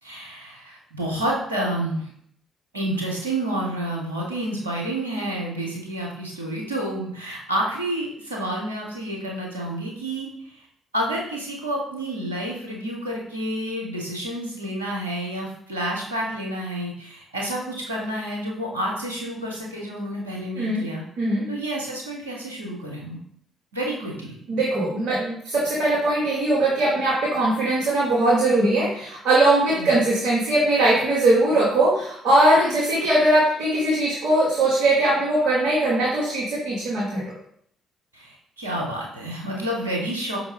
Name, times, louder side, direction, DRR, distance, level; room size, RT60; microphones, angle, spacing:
voice 1, 0.0-2.1 2.7-10.7 10.9-21.0 21.5-23.2 23.7-24.4 25.1-25.2 29.8-30.0 38.1-40.4, right 1 dB, 90° right, -2 dB, 0.7 m, -29 dB
voice 2, 24.5-37.2, right 1 dB, 60° right, -7 dB, 1.1 m, -20 dB
5.2 x 2.6 x 3.3 m, 0.67 s
figure-of-eight pair, 45°, 0 cm